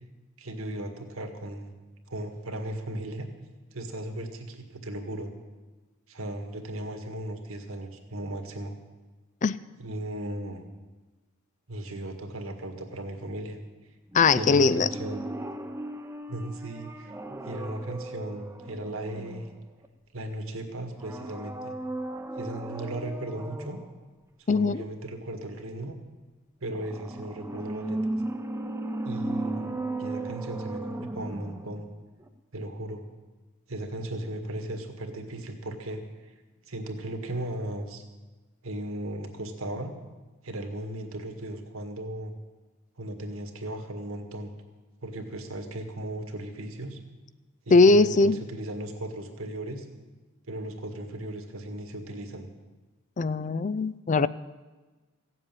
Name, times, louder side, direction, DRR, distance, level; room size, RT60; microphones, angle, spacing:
voice 1, 0.4-1.7 2.1-3.3 3.7-5.3 6.1-8.8 9.8-10.7 11.7-13.6 14.3-15.3 16.3-17.1 17.4-19.5 20.1-21.7 22.4-23.8 24.4-26.0 26.6-28.2 29.0-31.9 32.5-33.0 33.7-36.3 36.7-38.0 38.6-39.9 40.4-42.3 43.0-44.5 45.0-47.0 47.6-49.9 50.5-52.5, right 1 dB, 75° right, 5 dB, 1.9 m, -36 dB
voice 2, 14.1-14.9 24.5-24.8 47.7-48.4 53.2-54.3, left 3 dB, 35° left, 16 dB, 0.4 m, -20 dB
sound 1, 14.1-19.9 20.9-23.9 26.7-31.9 32.2-32.3, right 2 dB, 10° right, 0.8 m, -36 dB
15.5 x 7.8 x 9.2 m, 1.2 s
head